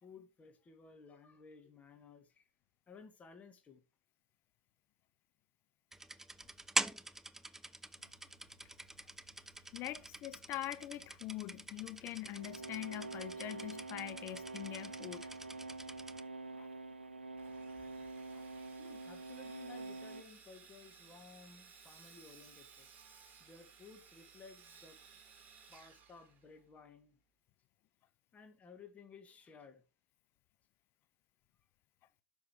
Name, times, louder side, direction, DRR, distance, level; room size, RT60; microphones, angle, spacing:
voice 1, 0.0-2.5 2.9-3.8 18.4-18.5 18.8-22.9 23.4-25.0 25.7-27.2 28.3-29.8, left 5 dB, 25° left, 1.9 m, -57 dB
sound 1, 5.9-16.2, right 1 dB, 5° right, 0.5 m, -44 dB
sound 2, 8.0-20.2, right 3 dB, 90° right, 0.4 m, -47 dB
voice 2, 9.7-15.3 16.6-16.7 18.3-18.4, left 15 dB, 40° left, 0.8 m, -43 dB
Sawing, 17.4-26.8, right 6 dB, 30° right, 2.5 m, -60 dB
12.5 x 5.3 x 3.3 m
figure-of-eight pair, 85°, 6 cm